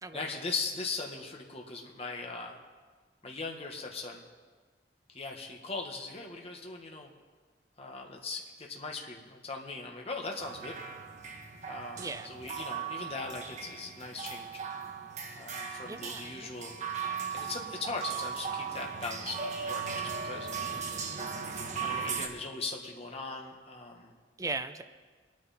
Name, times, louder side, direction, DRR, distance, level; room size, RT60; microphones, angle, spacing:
voice 1, 0.1-2.6 3.2-4.2 5.1-7.1 7.8-10.8 11.7-14.6 15.3-16.8 17.3-20.5 21.6-24.1, left 3 dB, 35° left, 1 dB, 1.5 m, -39 dB
sound 1, 10.4-22.3, right 6 dB, 45° right, 1.4 m, -38 dB
voice 2, 12.0-12.5 15.9-16.5 24.4-24.8, right 3 dB, 20° right, 9 dB, 0.5 m, -38 dB
23.0 x 9.6 x 4.2 m, 1.4 s
head